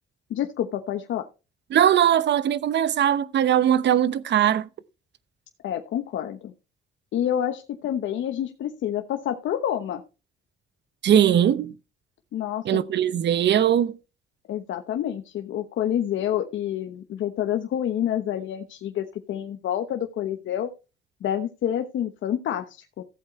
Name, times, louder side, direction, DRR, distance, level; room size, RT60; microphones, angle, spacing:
voice 1, 0.3-1.3 5.6-6.5 7.1-10.0 12.3-12.8 14.5-20.7 21.2-23.0, left 10 dB, 75° left, 1.1 m, -28 dB
voice 2, 1.7-4.7 11.0-11.7 12.6-13.9, right 10 dB, 60° right, 0.9 m, -20 dB
14.5 x 8.0 x 3.2 m
cardioid pair, 90°, 20 cm